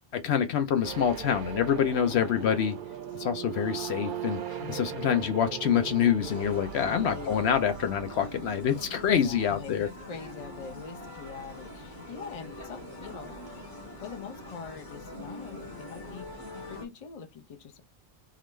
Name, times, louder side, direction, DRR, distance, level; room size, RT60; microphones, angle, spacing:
voice 1, 0.1-2.8 3.1-4.4 4.7-9.9, left 8 dB, 70° left, 0.8 m, -26 dB
sound 1, 0.8-8.7, right 9 dB, 55° right, 0.6 m, -39 dB
voice 2, 2.0-2.6 4.6-5.3 6.8-7.4 9.0-13.3 14.0-17.8, left 6 dB, 35° left, 0.7 m, -44 dB
sound 2, 6.2-16.9, left 1 dB, 20° left, 1.7 m, -43 dB
3.8 x 2.4 x 3.1 m
omnidirectional pair, 1.2 m